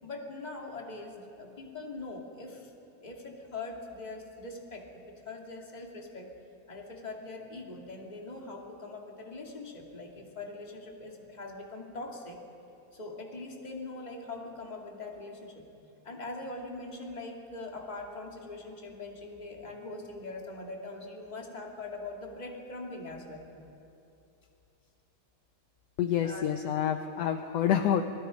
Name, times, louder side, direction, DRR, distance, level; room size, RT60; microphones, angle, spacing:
voice 1, 0.0-2.7 3.0-6.3 6.7-12.4 12.9-15.6 16.0-23.4 26.2-26.5, left 2 dB, 15° left, 0 dB, 1.8 m, -42 dB
voice 2, 26.0-28.0, left 9 dB, 75° left, 6 dB, 1.5 m, -27 dB
27.0 x 21.5 x 5.2 m, 2.8 s
omnidirectional pair, 3.8 m